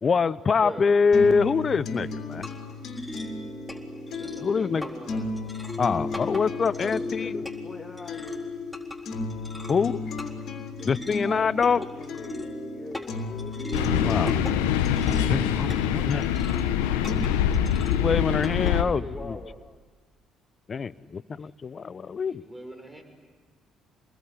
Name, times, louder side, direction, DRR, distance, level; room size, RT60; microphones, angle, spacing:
voice 1, 0.0-2.5 4.4-4.9 5.8-7.4 9.7-10.0 10.8-11.9 14.0-14.3 15.3-16.2 17.9-19.4 20.7-22.4, left 5 dB, 40° left, 0.8 m, -25 dB
voice 2, 0.6-0.9 4.2-5.3 20.9-21.2 22.4-23.0, right 1 dB, 15° right, 6.0 m, -42 dB
sound 1, 1.1-17.1, left 3 dB, 60° left, 3.3 m, -36 dB
sound 2, 2.0-18.7, left 1 dB, 5° left, 4.0 m, -37 dB
voice 3, 6.6-8.4 10.8-10.9 11.3-14.3 18.6-19.5, left 3 dB, 25° left, 2.4 m, -42 dB
sound 3, 13.7-18.8, left 10 dB, 85° left, 1.2 m, -24 dB
27.0 x 21.0 x 9.8 m
hypercardioid pair, 55°, 0 cm